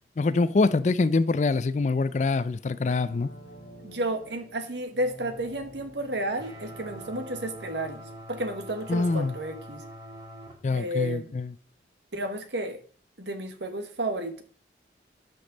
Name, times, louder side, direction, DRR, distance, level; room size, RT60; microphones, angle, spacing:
voice 1, 0.2-3.3 8.9-9.3 10.6-11.6, left 3 dB, 40° left, 0.4 m, -24 dB
sound 1, 2.7-9.5 9.9-10.0, equal, 65° left, 3.3 m, -50 dB
voice 2, 3.8-8.0 8.3-9.8 10.7-11.4 12.1-12.8 13.2-14.4, right 1 dB, 75° right, 1.4 m, -32 dB
sound 2, 6.4-10.5, equal, 25° right, 2.4 m, -44 dB
12.5 x 5.3 x 3.9 m
head